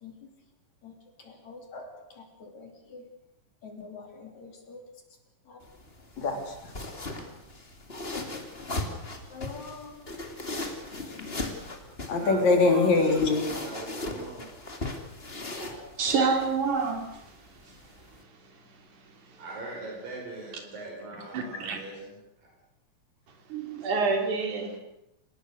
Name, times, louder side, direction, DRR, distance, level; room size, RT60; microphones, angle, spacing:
voice 1, 1.2-1.9 2.4-3.0 3.6-4.8 6.2-6.5 7.1-7.2 9.3-9.9 11.2-11.3 12.1-13.4 15.6-15.9, left 3 dB, 55° left, 4 dB, 4.3 m, -27 dB
sound 1, 5.6-18.2, left 2 dB, 20° left, 2.4 m, -38 dB
voice 2, 12.2-14.5 19.4-22.5, right 2 dB, 75° right, -1 dB, 6.7 m, -40 dB
voice 3, 16.0-17.1 21.3-21.8 23.5-24.8, right 4 dB, 60° right, 5 dB, 4.5 m, -27 dB
29.5 x 19.0 x 6.5 m, 0.83 s
omnidirectional pair, 4.0 m